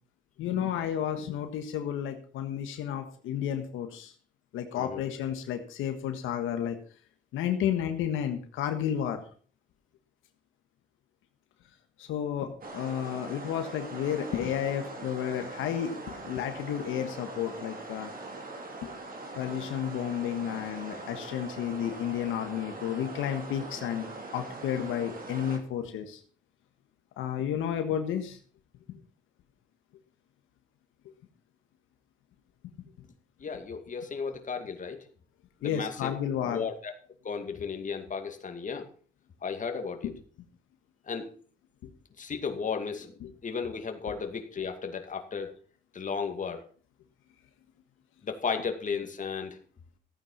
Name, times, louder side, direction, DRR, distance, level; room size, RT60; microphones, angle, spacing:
voice 1, 0.4-4.1 4.5-6.8 7.3-9.2 12.0-18.1 18.8-18.9 19.3-24.1 24.3-26.2 27.2-28.4 28.9-29.0 35.6-36.7 40.0-40.1 43.2-43.3, left 9 dB, 90° left, 6 dB, 1.5 m, -32 dB
voice 2, 4.7-5.0 33.4-35.0 35.6-36.1 36.4-36.9 37.2-38.9 39.4-40.1 41.1-41.3 42.2-45.5 45.9-46.6 48.2-49.6, left 5 dB, 40° left, 6 dB, 2.4 m, -34 dB
sound 1, 12.6-25.6, right 2 dB, 45° right, 3.1 m, -42 dB
14.5 x 9.2 x 5.6 m, 0.43 s
cardioid pair, 90°, 20 cm